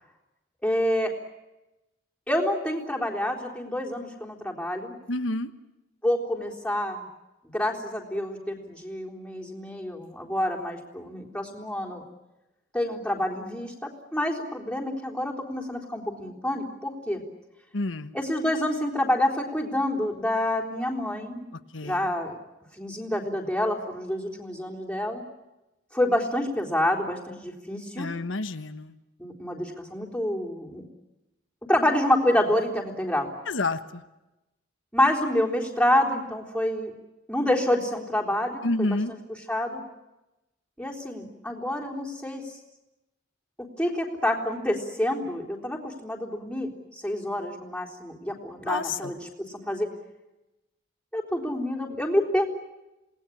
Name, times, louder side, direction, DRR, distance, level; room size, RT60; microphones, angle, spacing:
voice 1, 0.6-1.1 2.3-4.9 6.0-7.0 7.5-12.0 12.7-17.2 18.1-21.4 21.8-22.3 22.8-25.2 25.9-28.1 29.2-30.8 31.7-33.3 34.9-36.9 37.3-39.2 39.5-39.8 40.8-42.6 43.8-49.2 49.5-49.9 51.1-52.5, left 1 dB, 5° left, -1 dB, 3.8 m, -27 dB
voice 2, 5.1-5.5 17.7-18.1 21.7-22.1 28.0-28.9 33.5-34.0 38.6-39.1 48.7-49.1, left 2 dB, 90° left, 9 dB, 1.2 m, -29 dB
28.0 x 19.5 x 9.9 m, 0.98 s
head